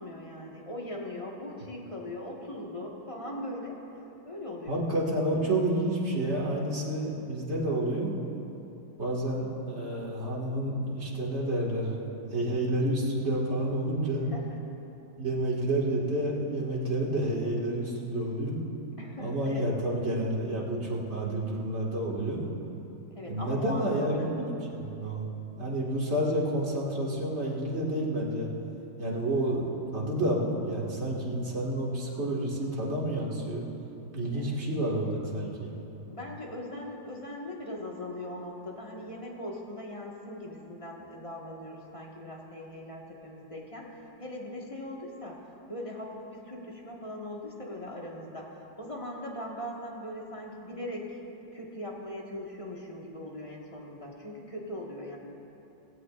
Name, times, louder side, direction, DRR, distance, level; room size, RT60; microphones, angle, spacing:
voice 1, 0.0-3.7 4.2-4.8 14.3-14.4 19.0-19.6 23.1-24.3 34.3-34.6 36.1-51.2 51.5-55.2, left 1 dB, 20° left, -3 dB, 1.4 m, -40 dB
voice 2, 4.7-8.1 9.0-14.3 15.2-18.6 19.2-22.4 23.2-24.4 24.7-25.3 25.6-28.5 29.0-33.6 34.1-35.7, right 1 dB, 35° right, -4 dB, 2.2 m, -29 dB
18.5 x 16.0 x 2.5 m, 2.9 s
omnidirectional pair, 2.1 m